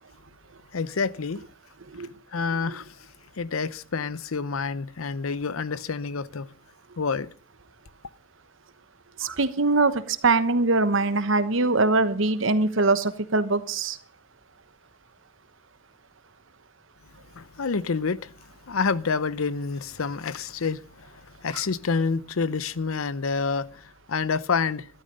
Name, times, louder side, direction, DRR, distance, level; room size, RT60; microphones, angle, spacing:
voice 1, 0.7-1.4 2.3-2.9 3.4-6.5 7.0-7.3 17.4-18.3 18.7-21.1 21.4-24.9, left 5 dB, 85° left, 0.7 m, -28 dB
voice 2, 9.2-14.0, right 3 dB, 65° right, 1.1 m, -22 dB
12.5 x 12.5 x 5.4 m
head